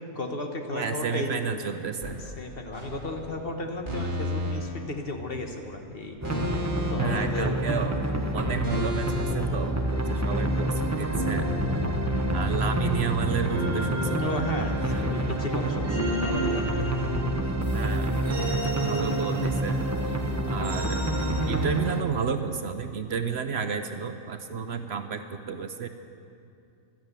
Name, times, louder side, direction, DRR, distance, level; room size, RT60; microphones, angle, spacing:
voice 1, 0.1-1.3 2.4-6.2 6.9-7.5 14.2-16.7, left 2 dB, 45° left, 4 dB, 1.4 m, -34 dB
voice 2, 0.7-2.2 7.0-8.0 8.3-11.5 12.3-14.4 17.7-18.2 18.5-19.8 20.5-21.1 21.5-25.9, right 6 dB, 60° right, 8 dB, 0.9 m, -31 dB
sound 1, 2.0-2.3 3.8-4.6 6.2-7.1 8.6-9.4 11.0-12.5 13.4-15.0 15.8-17.5 18.2-19.7 20.6-21.4, equal, 40° right, 2.9 m, -33 dB
sound 2, 2.7-8.3, right 1 dB, 25° left, 4.5 m, -50 dB
sound 3, 6.2-22.0, right 1 dB, 15° right, 1.0 m, -28 dB
15.0 x 12.0 x 8.1 m, 2.5 s
omnidirectional pair, 1.4 m